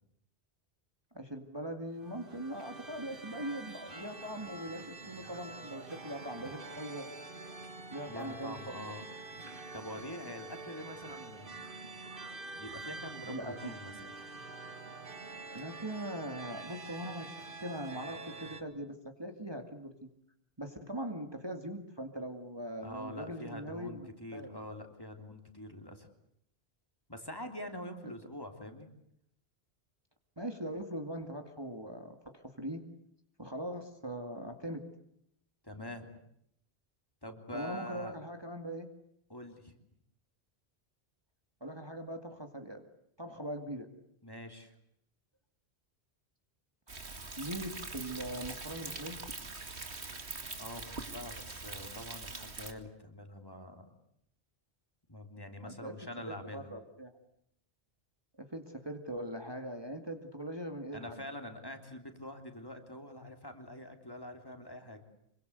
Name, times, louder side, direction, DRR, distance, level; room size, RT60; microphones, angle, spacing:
voice 1, 1.1-7.1 7.9-8.7 13.3-13.7 15.5-17.4 17.6-20.1 20.6-24.1 24.3-24.5 30.4-32.8 33.4-34.8 37.5-38.9 41.6-42.8 43.2-43.9 47.4-49.2 55.6-55.9 56.5-57.1 58.5-61.2, right 1 dB, 25° right, 5 dB, 2.3 m, -41 dB
sound 1, 1.9-18.6, right 3 dB, 55° right, 2.1 m, -46 dB
voice 2, 8.1-9.0 9.7-11.7 12.6-14.1 22.8-26.1 27.1-28.9 35.6-36.2 37.2-38.2 39.3-39.8 44.2-44.7 50.6-53.8 55.1-56.7 60.9-65.0, left 1 dB, 20° left, 5 dB, 3.2 m, -45 dB
Thunder, 46.9-52.7, right 3 dB, 80° right, 2.6 m, -43 dB
26.5 x 24.5 x 8.2 m, 0.74 s
omnidirectional pair, 1.1 m